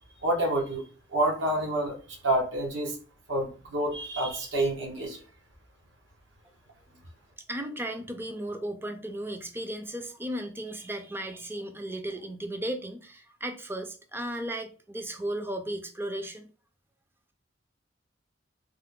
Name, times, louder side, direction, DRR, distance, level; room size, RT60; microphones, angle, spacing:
voice 1, 0.2-0.8 1.1-1.9 2.2-2.9 3.3-5.2, right 1 dB, 75° right, 1 dB, 1.0 m, -28 dB
voice 2, 7.5-16.5, right 1 dB, 10° right, 5 dB, 0.4 m, -35 dB
3.3 x 2.1 x 3.7 m, 0.38 s
head